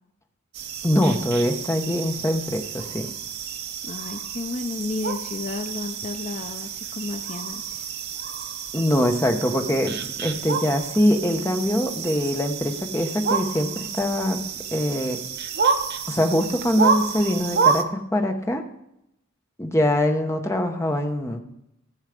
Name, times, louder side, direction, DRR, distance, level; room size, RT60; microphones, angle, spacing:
sound 1, 0.5-17.8, right 6 dB, 55° right, 0.8 m, -29 dB
voice 1, 0.8-3.1 8.7-14.4 14.7-15.2 16.1-18.6 19.6-21.4, left 1 dB, 15° left, 4 dB, 0.9 m, -23 dB
voice 2, 3.8-7.9, left 3 dB, 35° left, 7 dB, 0.5 m, -32 dB
14.0 x 7.2 x 5.1 m, 0.82 s
head